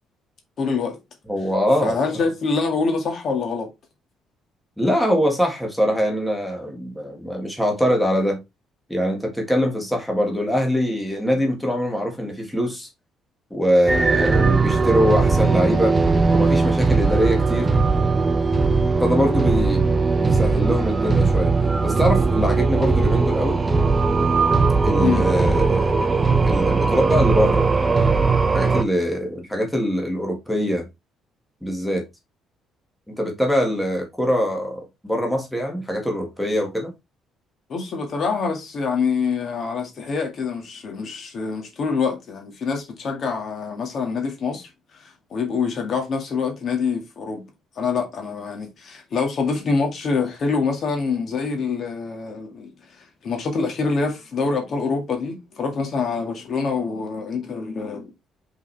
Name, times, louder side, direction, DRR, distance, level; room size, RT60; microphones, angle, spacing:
voice 1, 0.6-1.0 1.8-3.7 25.0-25.3 37.7-47.4 47.8-58.1, left 4 dB, 45° left, 2.0 m, -25 dB
voice 2, 1.3-1.9 4.8-8.4 8.9-12.9 13.5-16.0 16.3-17.7 19.0-19.9 20.2-21.5 21.8-23.6 24.8-26.1 26.4-27.7 28.5-30.9 31.6-32.0 33.1-36.9, equal, ahead, 1.8 m, -23 dB
sound 1, 13.9-28.8, right 4 dB, 20° right, 0.8 m, -19 dB
5.6 x 5.1 x 3.3 m
cardioid pair, 125°, 0 cm